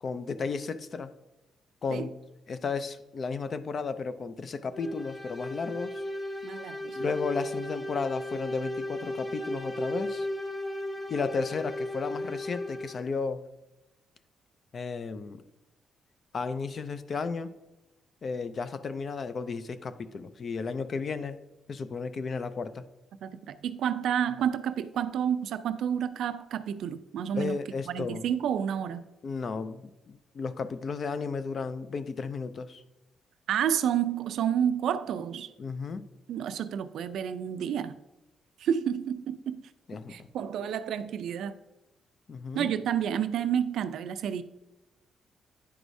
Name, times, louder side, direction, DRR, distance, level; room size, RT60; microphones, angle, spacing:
voice 1, 0.0-1.1 1.8-2.1 2.5-6.0 7.0-10.3 11.1-13.4 14.7-15.4 16.3-17.5 18.2-21.4 21.7-22.8 27.4-28.2 29.2-32.8 35.6-36.1 39.9-40.1 42.3-42.7, left 5 dB, 45° left, 12 dB, 0.4 m, -33 dB
sound 1, 4.7-13.1, left 1 dB, 10° left, 0.8 m, -35 dB
voice 2, 6.4-7.1 23.2-27.6 27.9-29.0 33.5-35.5 36.3-38.0 38.6-39.6 40.1-41.6 42.5-44.4, right 9 dB, 80° right, 12 dB, 0.4 m, -30 dB
9.9 x 4.8 x 2.6 m, 0.97 s
cardioid pair, 125°, 0 cm